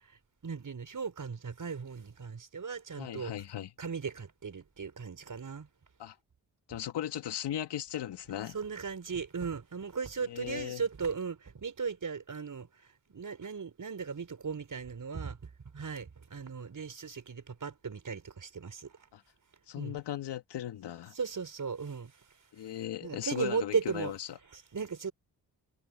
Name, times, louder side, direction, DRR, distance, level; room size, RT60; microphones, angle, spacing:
voice 1, 0.4-3.3 3.8-5.7 8.5-12.7 13.1-18.9 19.8-20.0 21.2-22.1 23.0-24.1 24.5-25.1, right 5 dB, 50° right, 5.4 m, -37 dB
voice 2, 3.0-3.7 6.0-6.2 6.7-8.6 10.2-10.8 19.1-19.2 19.7-21.2 22.5-24.4, left 11 dB, 85° left, 1.9 m, -37 dB
cardioid pair, 55°, 40 cm